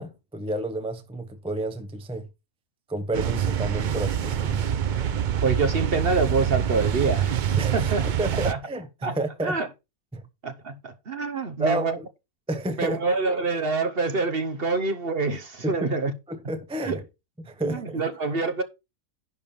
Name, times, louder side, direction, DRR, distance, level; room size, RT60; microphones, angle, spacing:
voice 1, 0.0-2.3 2.9-4.6 7.6-7.9 8.2-9.6 10.1-10.2 11.6-12.0 12.5-13.0 15.6-15.9 16.3-17.0 17.4-18.0, right 1 dB, 5° right, 0.6 m, -30 dB
sound 1, 3.1-8.5, right 9 dB, 85° right, 0.4 m, -25 dB
voice 2, 5.4-8.1 8.3-8.6 9.0-9.2 9.4-9.7 10.4-12.0 12.8-16.1 16.8-17.0 17.6-18.6, right 4 dB, 45° right, 1.1 m, -26 dB
11.0 x 3.6 x 6.8 m
omnidirectional pair, 1.6 m